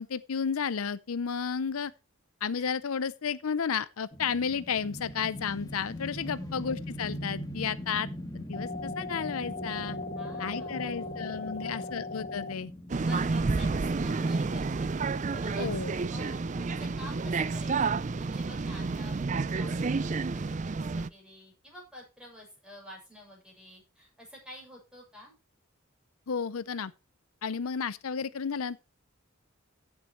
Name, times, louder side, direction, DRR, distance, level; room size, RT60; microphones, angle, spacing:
voice 1, 0.0-1.9 2.4-8.1 8.3-10.0 10.4-12.7 15.6-15.9 26.3-26.9 27.4-28.8, left 6 dB, 85° left, 0.6 m, -32 dB
sound 1, 4.1-16.3, equal, 15° left, 1.8 m, -41 dB
voice 2, 6.2-6.7 10.1-11.9 13.0-14.9 15.3-15.7 16.1-25.3, left 1 dB, 5° right, 6.5 m, -49 dB
sound 2, 8.5-12.5, left 3 dB, 40° left, 1.7 m, -38 dB
sound 3, 12.9-21.1, right 4 dB, 35° right, 0.4 m, -30 dB
15.5 x 7.4 x 3.1 m
head